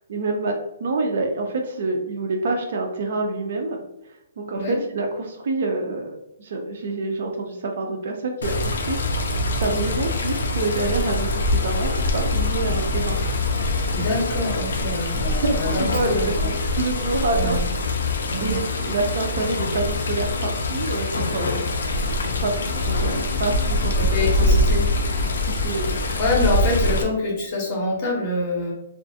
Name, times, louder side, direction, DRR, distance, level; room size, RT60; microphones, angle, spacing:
voice 1, 0.1-3.8 4.4-9.3 9.6-13.2 15.3-17.6 17.8-21.7 22.4-24.0 24.4-24.8 25.2-26.0, right 2 dB, 45° right, 3 dB, 0.3 m, -27 dB
Water, 8.4-27.0, left 2 dB, 65° left, 0.4 m, -24 dB
voice 2, 13.9-16.5 17.3-17.6 18.3-18.6 24.0-24.8 26.2-28.7, left 2 dB, 25° left, -2 dB, 0.6 m, -25 dB
2.4 x 2.3 x 2.6 m, 0.87 s
hypercardioid pair, 180°, 0 cm